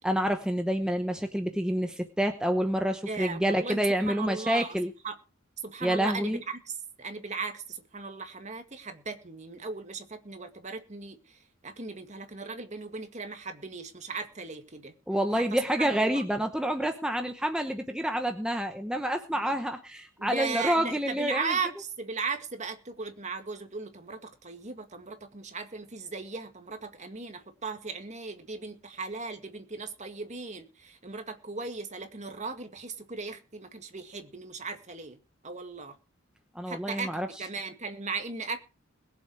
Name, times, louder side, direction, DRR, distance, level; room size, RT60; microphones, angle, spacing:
voice 1, 0.0-4.9 5.8-6.4 15.1-21.5 36.5-37.3, equal, 5° right, 0.9 m, -28 dB
voice 2, 3.1-4.8 5.0-5.2 5.6-14.9 15.3-16.2 19.3-19.6 20.2-35.2 35.4-36.0 36.7-38.6, right 4 dB, 35° right, 2.1 m, -37 dB
21.5 x 7.6 x 4.7 m
head